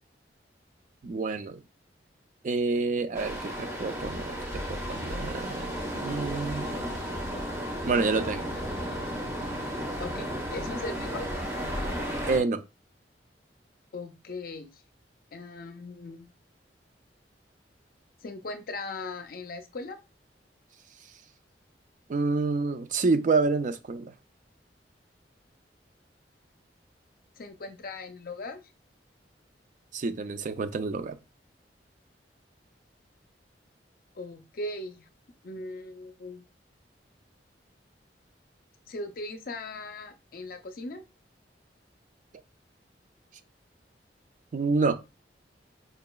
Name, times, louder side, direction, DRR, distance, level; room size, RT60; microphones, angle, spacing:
voice 1, 1.0-1.6 2.4-6.7 7.8-8.5 12.3-12.6 22.1-24.1 29.9-31.2 44.5-44.9, right 4 dB, 45° right, 0.4 m, -28 dB
sound 1, 3.1-12.4, equal, 15° right, 1.0 m, -34 dB
voice 2, 10.0-11.3 13.9-14.7 15.3-16.3 18.2-20.0 27.4-28.6 34.2-35.1 35.4-36.4 38.9-41.0, left 2 dB, 55° left, 0.6 m, -39 dB
5.0 x 2.9 x 2.3 m
head